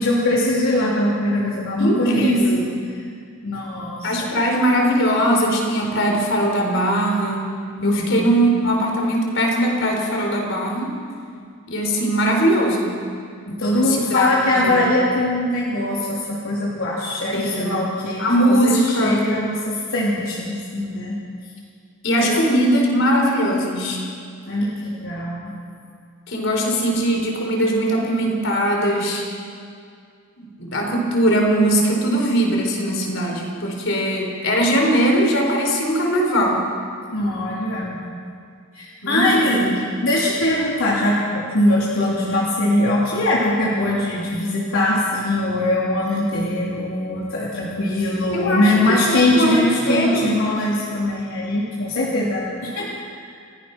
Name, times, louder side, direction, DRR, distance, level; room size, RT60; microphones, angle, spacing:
voice 1, 0.0-2.3 3.4-4.3 7.8-8.5 13.5-21.2 22.2-22.3 24.5-25.6 37.1-38.0 38.7-39.6 40.0-52.9 53.2-53.4, left 1 dB, 75° left, -6 dB, 3.2 m, -21 dB
voice 2, 1.8-2.7 4.0-7.4 7.8-10.9 11.7-12.9 13.7-14.3 14.6-14.8 17.3-17.8 18.2-19.2 22.0-24.0 26.3-29.2 30.4-36.6 39.0-39.7 48.3-48.6 48.9-50.3, equal, 60° left, 1 dB, 4.4 m, -20 dB
29.0 x 15.0 x 6.0 m, 2.2 s
head